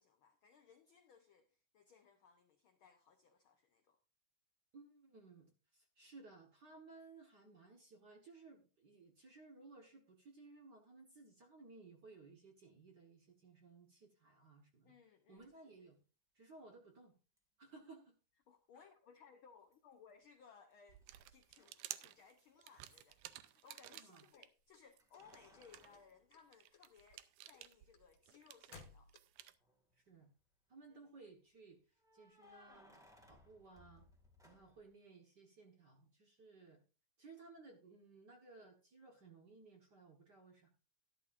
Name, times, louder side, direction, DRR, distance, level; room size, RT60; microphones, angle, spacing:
voice 1, 0.0-4.0 14.8-15.5 18.5-21.0 21.3-29.1 30.9-31.0, left 6 dB, 85° left, 1.1 m, -64 dB
voice 2, 4.7-14.9 15.3-16.0 16.3-17.1 17.6-18.2 24.0-24.2 30.0-30.3 30.7-31.8 32.1-34.0 34.4-36.8 37.2-40.7, right 3 dB, 50° right, 1.3 m, -59 dB
Keys jangling, 15.4-15.5 17.4-17.5 19.7-20.3 20.5-23.7 25.0-27.1 27.6-27.7 29.5-30.0 32.0-35.0, left 2 dB, ahead, 1.1 m, -67 dB
sound 1, 20.9-24.5 24.9-29.6, right 14 dB, 90° right, 2.2 m, -54 dB
sound 2, 24.3-25.6 25.9-26.5 26.7-29.5, left 5 dB, 65° left, 2.3 m, -60 dB
12.5 x 12.0 x 2.5 m
omnidirectional pair, 3.5 m